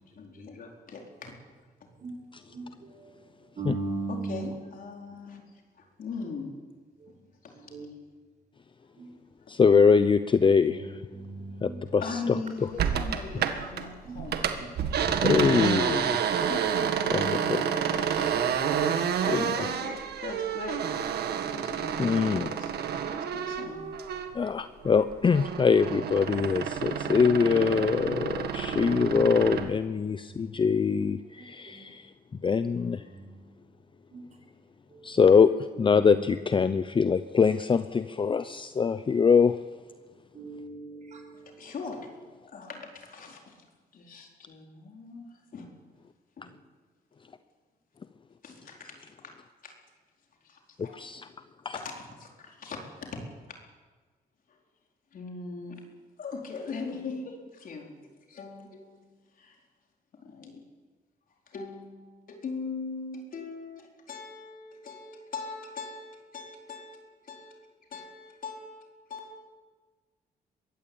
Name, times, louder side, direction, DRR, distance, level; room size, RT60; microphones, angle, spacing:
voice 1, 0.1-1.3 4.1-5.4 5.8-6.5 7.1-7.2 7.4-7.5 12.0-14.4 16.4-16.9 17.9-18.1 19.3-21.1 21.5-22.1 22.4-22.7 23.2-23.9 41.6-42.1 42.5-43.6 43.9-45.3 45.5-45.7 46.4-46.5 48.4-49.3 49.6-49.7 50.4-51.0 51.7-53.2 53.5-53.6 55.1-55.8 56.2-58.0 58.3-58.9 59.4-59.6 60.2-60.6 61.5-67.0 67.3-67.5 67.9-68.8 69.1-69.4, left 4 dB, 60° left, 4.4 m, -40 dB
voice 2, 2.5-3.1 3.6-4.5 7.0-7.1 7.5-7.9 9.0-9.1 10.9-12.0 14.0-14.6 14.9-15.5 17.4-17.5 31.7-31.8 32.7-33.4 34.1-34.2 34.9-35.0 35.9-36.3 40.3-41.7, right 3 dB, 45° right, 5.6 m, -39 dB
voice 3, 9.5-11.0 11.6-12.4 12.7-12.8 15.2-16.2 17.1-17.6 17.9-18.4 19.3-19.7 22.0-22.5 24.3-32.1 32.4-33.0 35.0-35.5 35.8-39.6 50.8-51.3 51.6-51.8, left 5 dB, 30° left, 0.6 m, -23 dB
sound 1, 12.8-13.8 14.1-24.5 24.8-29.7, right 8 dB, 80° right, 1.8 m, -29 dB
22.0 x 15.5 x 8.7 m
cardioid pair, 100°, 16 cm